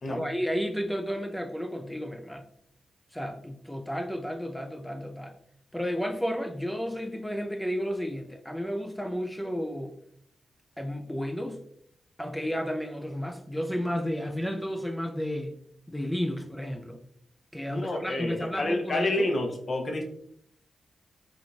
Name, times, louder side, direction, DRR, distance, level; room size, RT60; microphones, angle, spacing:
voice 1, 0.1-2.4 3.1-5.3 5.7-9.9 10.8-11.6 12.2-15.5 15.9-17.0 17.5-19.3, equal, 5° left, 0.4 m, -32 dB
voice 2, 17.7-20.0, left 1 dB, 50° left, 0.6 m, -29 dB
3.6 x 2.3 x 2.4 m
supercardioid pair, 45°, 0 cm